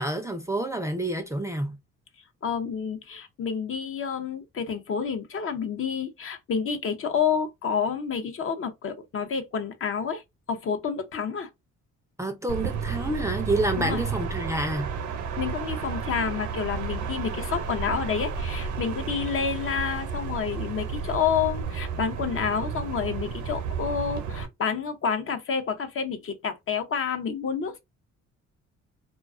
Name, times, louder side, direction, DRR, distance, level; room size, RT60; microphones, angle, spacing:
voice 1, 0.0-1.8 12.2-14.9, right 1 dB, 10° right, 0.4 m, -28 dB
voice 2, 2.4-10.2 10.5-11.5 13.8-14.0 15.4-27.8, left 6 dB, 45° left, 0.6 m, -29 dB
sound 1, 12.5-24.5, right 6 dB, 80° right, 0.7 m, -32 dB
2.3 x 2.3 x 2.4 m
cardioid pair, 90°, 30 cm